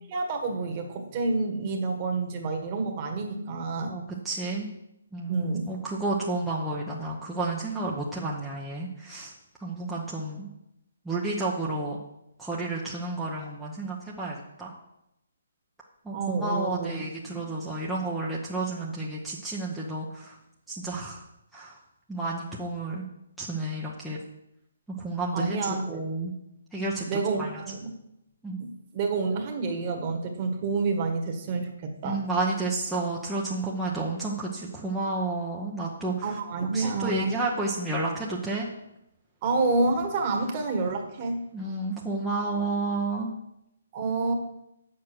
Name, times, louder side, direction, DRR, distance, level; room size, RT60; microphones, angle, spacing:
voice 1, 0.1-3.9 5.3-5.7 16.1-17.5 25.3-26.0 27.1-28.0 28.6-32.2 36.2-37.4 39.4-41.4 43.9-44.3, right 3 dB, 30° right, 3 dB, 1.5 m, -29 dB
voice 2, 3.8-4.7 5.1-9.3 9.6-10.5 11.0-12.0 12.4-14.7 16.0-20.4 20.7-21.2 21.5-21.8 22.1-23.0 23.4-24.2 25.0-26.3 26.7-27.1 27.4-27.5 28.4-28.6 32.0-36.4 36.7-38.7 41.5-43.3, right 2 dB, 5° right, -6 dB, 0.9 m, -31 dB
8.3 x 6.7 x 6.2 m, 0.85 s
hypercardioid pair, 160°, 0 cm